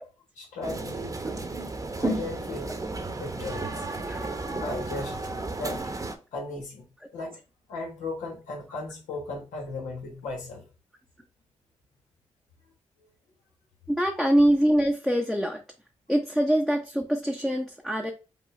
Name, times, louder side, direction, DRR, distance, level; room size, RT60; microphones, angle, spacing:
voice 1, 0.4-1.2 1.9-2.7 3.2-3.9 4.6-5.2 5.6-5.9 6.3-6.9 7.1-7.4 7.7-10.6, left 2 dB, 90° left, 1.3 m, -36 dB
sound 1, 0.6-6.2, right 2 dB, 30° right, 0.9 m, -33 dB
voice 2, 13.9-15.6 16.1-18.1, equal, ahead, 0.7 m, -24 dB
5.2 x 2.3 x 3.1 m
supercardioid pair, 50°, 12 cm